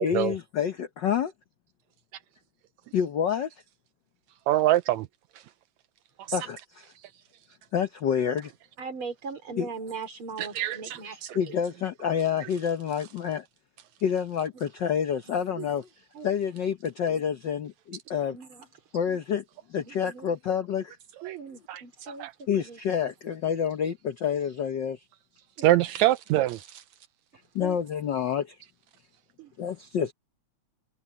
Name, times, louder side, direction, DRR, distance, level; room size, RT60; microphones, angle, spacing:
voice 1, 0.0-1.3 2.9-3.5 6.3-6.8 7.7-8.5 9.6-9.7 11.3-13.4 14.0-15.8 16.2-18.4 18.9-19.4 19.7-21.0 22.5-25.0 27.5-28.5 29.6-30.1, left 8 dB, 70° left, 1.0 m, -28 dB
voice 2, 4.5-5.1 10.4-11.3 21.3-21.4 21.7-21.8 22.2-22.3 25.6-26.8, right 15 dB, 80° right, 1.9 m, -24 dB
voice 3, 8.8-11.5 14.5-14.6 15.3-15.7 16.1-16.3 17.1-17.2 18.1-18.7 19.1-19.2 19.8-20.3 21.2-22.8 25.6-25.7 27.6-27.8 29.4-29.5, right 5 dB, 45° right, 4.4 m, -40 dB
omnidirectional pair, 3.3 m